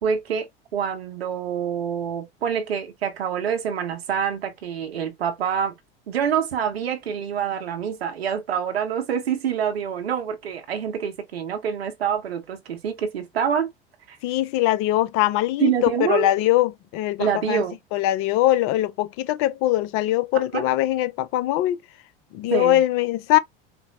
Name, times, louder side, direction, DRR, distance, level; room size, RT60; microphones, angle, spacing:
voice 1, 0.0-5.7 6.1-13.7 14.1-14.2 15.6-16.3 17.2-17.8 20.5-20.7 22.5-22.8, right 7 dB, 80° right, 1.0 m, -26 dB
voice 2, 14.2-17.6 17.9-21.8 22.3-23.4, left 14 dB, 45° left, 0.5 m, -22 dB
4.3 x 2.0 x 2.8 m
hypercardioid pair, 80°, 30 cm